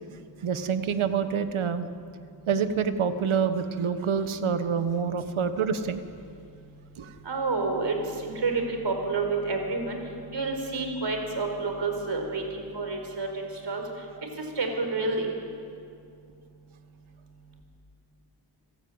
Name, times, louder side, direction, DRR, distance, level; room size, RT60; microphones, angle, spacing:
voice 1, 0.4-1.9 2.5-6.0 7.0-7.1, right 6 dB, 75° right, 10 dB, 1.5 m, -27 dB
voice 2, 7.2-7.9 8.2-10.0 10.3-13.8 14.6-15.3, right 3 dB, 60° right, 3 dB, 5.0 m, -29 dB
28.0 x 15.0 x 9.0 m, 2.5 s
cardioid pair, 85°, 49 cm